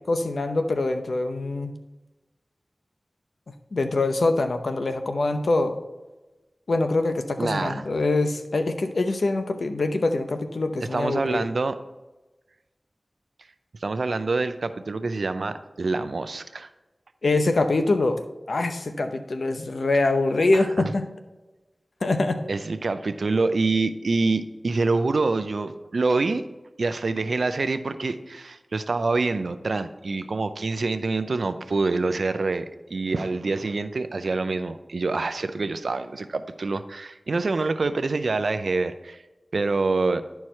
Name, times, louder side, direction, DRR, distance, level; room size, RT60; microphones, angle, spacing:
voice 1, 0.1-1.7 3.7-5.8 6.7-11.5 17.2-18.2 18.5-21.1 22.0-22.4, left 2 dB, 85° left, 7 dB, 0.8 m, -24 dB
voice 2, 7.4-7.8 10.9-11.8 13.8-16.7 20.5-20.9 22.5-26.4 26.8-39.2 39.5-40.2, right 3 dB, 85° right, 11 dB, 0.5 m, -26 dB
11.0 x 4.7 x 4.3 m, 1.1 s
cardioid pair, 40°, 0 cm